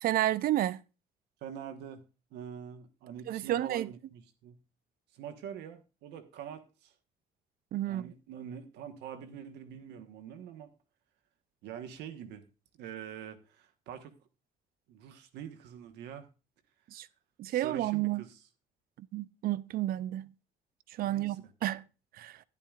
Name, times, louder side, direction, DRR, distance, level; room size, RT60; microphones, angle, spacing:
voice 1, 0.0-0.8 3.3-3.9 7.7-8.1 16.9-17.1 17.4-18.2 19.0-20.3 20.9-21.8 22.1-22.4, right 14 dB, 60° right, 0.5 m, -31 dB
voice 2, 1.4-2.0 2.3-4.6 5.1-6.9 7.8-10.7 11.6-12.4 12.7-14.2 14.9-16.3 17.5-18.4 21.0-21.5, right 8 dB, 85° right, 1.2 m, -45 dB
12.0 x 10.0 x 2.4 m
cardioid pair, 110°, 17 cm